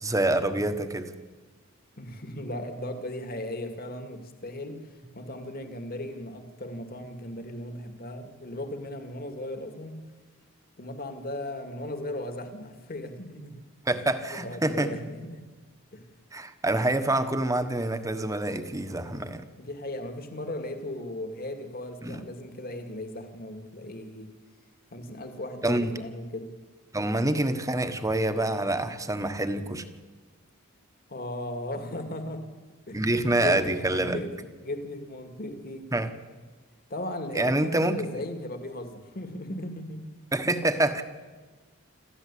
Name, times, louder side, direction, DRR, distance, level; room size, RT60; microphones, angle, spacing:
voice 1, 0.0-1.1 13.9-14.9 16.3-19.4 22.0-22.2 25.6-25.9 26.9-29.9 32.9-34.2 35.9-36.1 37.3-38.0 40.3-41.0, right 1 dB, 15° right, 9 dB, 1.3 m, -26 dB
voice 2, 2.0-4.9 5.1-10.1 10.8-13.6 14.3-15.4 15.9-16.1 19.6-24.3 24.9-26.5 31.1-32.5 32.9-33.0 33.3-35.9 36.9-40.1, left 1 dB, 45° left, 6 dB, 2.2 m, -37 dB
27.0 x 14.0 x 8.5 m, 1.3 s
head